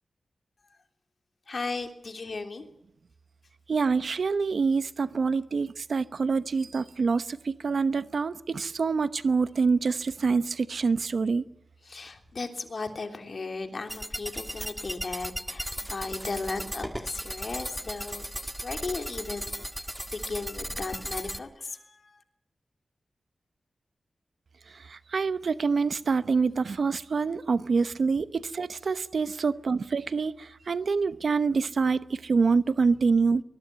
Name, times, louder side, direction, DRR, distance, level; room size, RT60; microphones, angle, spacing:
voice 1, 1.5-2.7 11.8-19.6 20.1-22.2, left 3 dB, 55° left, 3.2 m, -36 dB
voice 2, 3.7-11.4 24.7-33.4, right 4 dB, 70° right, 1.0 m, -26 dB
sound 1, 13.9-21.4, equal, 5° right, 1.7 m, -36 dB
23.5 x 21.0 x 9.3 m
wide cardioid pair, 75°, 0 cm